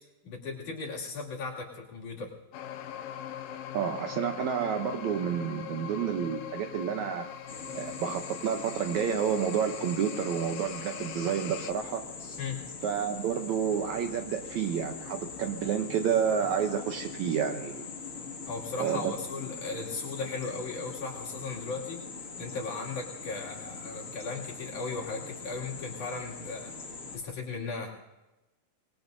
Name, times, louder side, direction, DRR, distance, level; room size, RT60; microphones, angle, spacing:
voice 1, 0.2-2.3 12.4-12.6 18.5-22.0 22.4-26.7 27.1-28.0, left 4 dB, 60° left, -4 dB, 3.8 m, -37 dB
sound 1, 2.5-11.7, left 10 dB, 80° left, 2.5 m, -41 dB
voice 2, 3.7-7.3 7.7-12.0 12.8-17.9 18.8-19.1, right 8 dB, 70° right, 5 dB, 1.9 m, -30 dB
sound 2, 7.5-27.2, left 4 dB, 30° left, 1.6 m, -42 dB
25.0 x 21.5 x 2.6 m, 1.0 s
omnidirectional pair, 4.0 m